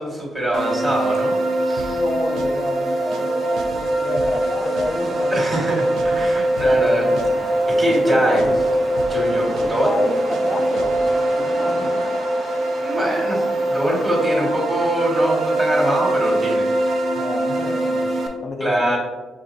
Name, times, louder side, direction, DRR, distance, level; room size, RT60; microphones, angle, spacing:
voice 1, 0.0-1.4 1.6-2.0 5.3-8.4 9.1-9.9 12.8-16.6 18.6-19.0, right 1 dB, 30° right, -3 dB, 1.5 m, -23 dB
sound 1, 0.5-18.3, right 1 dB, 60° right, 0.8 m, -22 dB
sound 2, 1.8-2.1 2.4-2.7 3.0-3.3 3.6-3.9 4.2-4.5 4.8-5.1 5.4-5.7 6.0-6.3 6.6-6.9 7.2-7.5 7.8-8.1 8.4-8.7 9.0-9.3 9.6-9.9 10.2-10.5 10.8-11.1, right 3 dB, 75° right, 0.4 m, -37 dB
voice 2, 1.9-5.6 6.7-7.5 7.8-8.6 9.6-11.0 11.4-12.1 17.1-18.2 18.4-19.0, left 2 dB, 35° left, 5 dB, 0.4 m, -30 dB
sound 3, 4.6-12.0, equal, ahead, 0.7 m, -38 dB
6.0 x 2.7 x 2.6 m, 1.3 s
cardioid pair, 90°, 0 cm